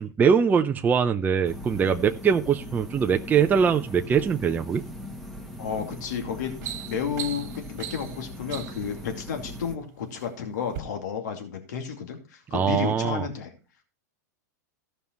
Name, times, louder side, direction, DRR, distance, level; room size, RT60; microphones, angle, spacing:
voice 1, 0.0-4.8 12.5-13.3, right 7 dB, 20° right, 6 dB, 0.6 m, -22 dB
sound 1, 1.4-9.8, equal, ahead, 1.4 m, -40 dB
voice 2, 5.6-13.5, left 7 dB, 75° left, 5 dB, 2.4 m, -32 dB
sound 2, 5.7-5.9 6.3-8.9 9.7-10.3 10.7-10.8, right 10 dB, 65° right, 1.9 m, -38 dB
15.0 x 5.5 x 4.5 m, 0.34 s
hypercardioid pair, 130°, 10 cm